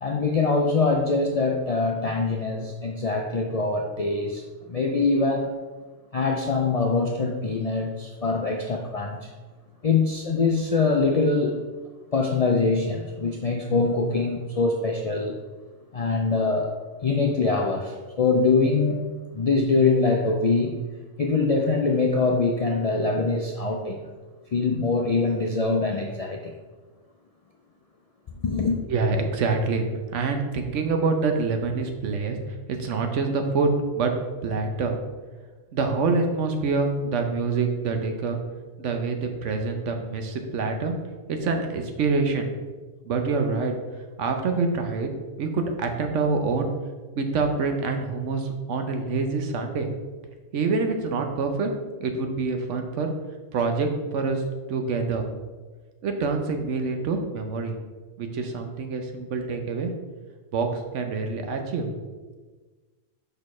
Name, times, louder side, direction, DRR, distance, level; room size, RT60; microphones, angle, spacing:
voice 1, 0.0-4.4 4.7-5.5 6.1-9.3 9.8-11.5 12.1-15.4 15.9-16.7 17.0-19.0 19.3-20.7 21.2-24.1 24.5-26.5 28.4-28.8, left 3 dB, 60° left, 1 dB, 0.4 m, -23 dB
voice 2, 28.9-29.8 30.1-34.1 34.4-35.0 35.7-38.4 38.8-40.9 41.3-42.5 43.0-43.7 44.2-45.1 45.4-46.7 47.2-49.9 50.5-51.7 52.0-53.1 53.5-54.4 54.7-55.3 56.0-57.7 58.2-59.9 60.5-61.9, right 4 dB, 80° right, 5 dB, 1.1 m, -26 dB
6.3 x 5.2 x 3.1 m, 1.3 s
omnidirectional pair, 1.2 m